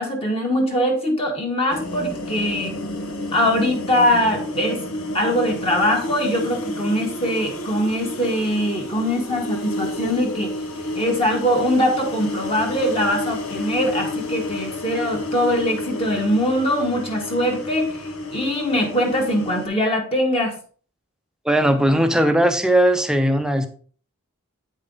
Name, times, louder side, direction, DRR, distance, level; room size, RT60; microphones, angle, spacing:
voice 1, 0.0-2.8 3.3-4.8 5.1-10.5 10.9-20.5, equal, 25° left, 0 dB, 1.5 m, -22 dB
sound 1, 1.7-19.7, left 1 dB, 90° left, 1.6 m, -30 dB
voice 2, 21.4-23.7, right 1 dB, 5° right, 7 dB, 0.8 m, -18 dB
8.8 x 5.5 x 4.0 m, 0.43 s
head